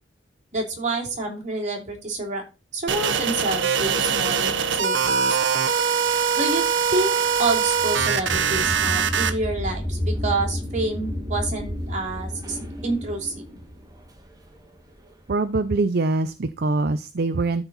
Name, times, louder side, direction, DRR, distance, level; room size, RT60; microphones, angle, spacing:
voice 1, 0.5-2.4 2.7-5.4 6.4-6.6 6.9-12.6 12.8-13.4, right 2 dB, 40° right, 1 dB, 2.9 m, -28 dB
sound 1, 2.9-9.3, right 6 dB, 80° right, 0.9 m, -22 dB
sound 2, 6.1-15.1, left 1 dB, 20° right, 1.5 m, -31 dB
voice 2, 15.3-17.7, right 3 dB, 55° right, 11 dB, 0.6 m, -23 dB
13.0 x 4.4 x 4.1 m, 0.30 s
head